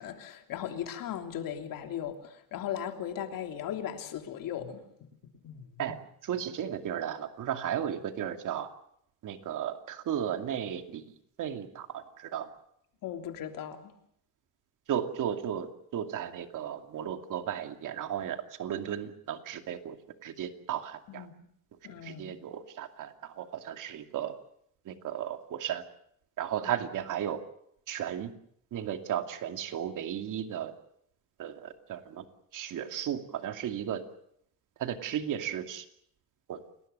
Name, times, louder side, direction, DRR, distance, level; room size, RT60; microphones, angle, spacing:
voice 1, 0.0-4.8 5.4-5.9 13.0-13.9 21.1-21.3 21.8-22.4, left 10 dB, 65° left, 3.1 m, -37 dB
voice 2, 5.8-8.7 9.2-11.0 11.4-12.5 14.9-20.0 20.2-21.3 22.0-24.3 24.9-25.8 26.4-27.4 27.9-28.3 28.7-30.7 31.4-32.2 32.5-34.0 34.8-35.8 36.5-36.6, right 9 dB, 60° right, 2.6 m, -35 dB
29.0 x 19.5 x 6.8 m
cardioid pair, 150°, 35 cm